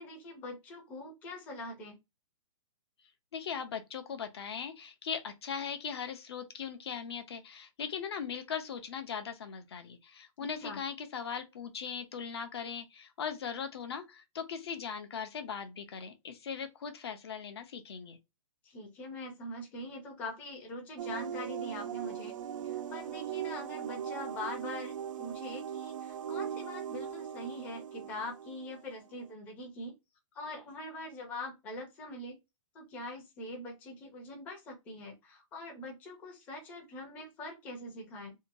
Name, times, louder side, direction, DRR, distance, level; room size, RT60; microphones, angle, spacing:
voice 1, 0.0-2.0 10.4-10.8 18.6-22.4 22.6-29.9 30.3-32.4 32.7-38.4, left 1 dB, 10° left, 0.5 m, -43 dB
voice 2, 3.3-18.2, left 7 dB, 50° left, 0.6 m, -39 dB
sound 1, 21.0-29.3, right 9 dB, 70° right, 0.4 m, -39 dB
2.7 x 2.2 x 2.6 m
hypercardioid pair, 170°, 17 cm